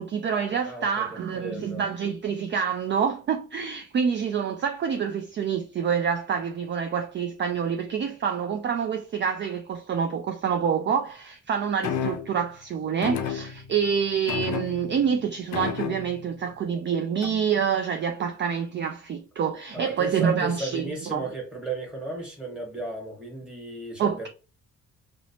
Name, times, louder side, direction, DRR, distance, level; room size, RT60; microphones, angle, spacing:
voice 1, 0.0-21.3 24.0-24.3, right 7 dB, 40° right, 0.4 m, -27 dB
voice 2, 0.6-1.0 1.3-1.8 19.7-24.3, right 2 dB, 5° right, 1.3 m, -35 dB
sound 1, 11.8-12.4 13.0-13.9 14.3-15.1 15.5-16.3 17.2-17.5, left 8 dB, 70° left, 0.5 m, -31 dB
2.8 x 2.1 x 2.8 m
cardioid pair, 90°, 30 cm